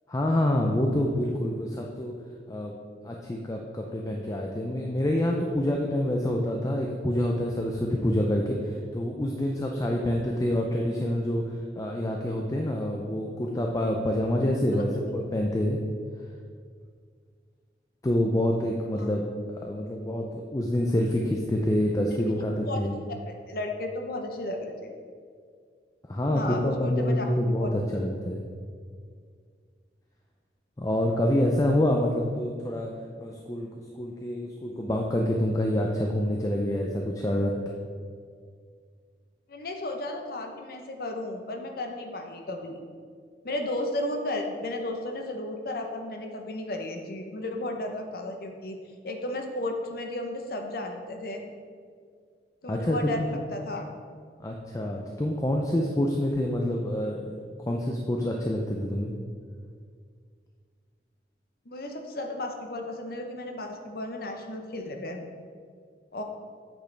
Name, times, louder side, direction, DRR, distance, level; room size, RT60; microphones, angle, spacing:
voice 1, 0.1-2.1 2.5-2.7 3.0-11.4 11.7-15.8 18.0-19.2 19.6-23.0 26.1-28.4 30.8-32.9 33.2-37.5 52.7-53.4 54.4-59.1, left 1 dB, 20° left, 0 dB, 0.5 m, -27 dB
voice 2, 23.3-24.9 26.3-27.2 27.6-27.7 39.5-42.8 43.4-48.8 49.0-51.4 52.6-53.9 61.7-65.2 66.1-66.2, left 1 dB, 55° left, 3 dB, 0.8 m, -34 dB
8.3 x 6.2 x 3.4 m, 2.1 s
head